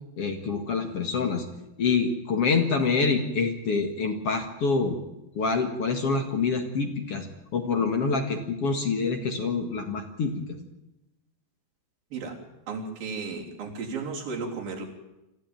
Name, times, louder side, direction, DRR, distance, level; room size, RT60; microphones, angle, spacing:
voice 1, 0.2-1.4 1.8-5.0 5.4-7.3 7.5-10.4, left 4 dB, 50° left, 5 dB, 2.4 m, -26 dB
voice 2, 12.7-14.9, right 4 dB, 80° right, -1 dB, 5.3 m, -34 dB
26.0 x 14.5 x 9.1 m, 0.94 s
omnidirectional pair, 4.0 m